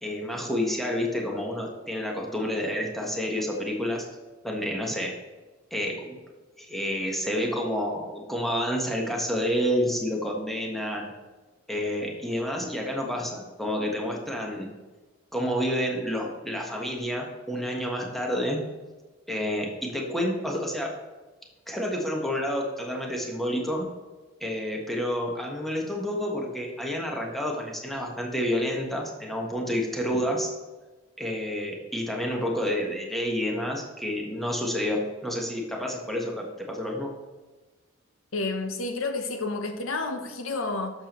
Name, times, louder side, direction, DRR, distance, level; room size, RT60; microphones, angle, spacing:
voice 1, 0.0-4.0 4.4-5.1 5.7-6.2 6.6-11.1 11.7-14.7 15.3-18.6 19.3-21.0 21.7-23.8 24.4-30.5 31.2-37.1, equal, ahead, -1 dB, 1.3 m, -29 dB
voice 2, 38.3-40.9, left 3 dB, 80° left, 6 dB, 0.9 m, -30 dB
11.0 x 6.8 x 3.1 m, 1.2 s
head